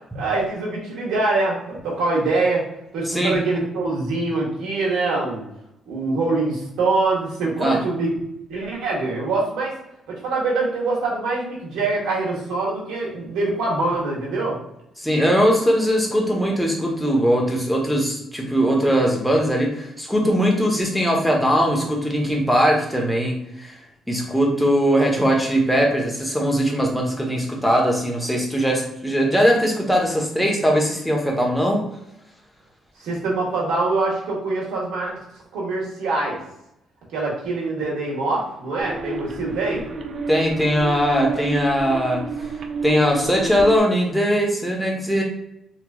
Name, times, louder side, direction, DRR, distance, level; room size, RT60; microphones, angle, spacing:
voice 1, 0.1-2.6 2.9-5.4 5.9-8.1 8.5-9.7 10.1-14.6 33.0-35.1 35.5-36.4 37.1-39.9, right 3 dB, 80° right, -3 dB, 1.3 m, -24 dB
voice 2, 3.1-3.4 7.6-7.8 15.0-23.8 24.1-31.8 40.3-42.2 42.8-45.2, equal, ahead, -1 dB, 1.0 m, -20 dB
sound 1, 38.8-43.8, right 4 dB, 55° right, 0.4 m, -31 dB
3.3 x 3.0 x 2.3 m, 0.82 s
cardioid pair, 90°, 0 cm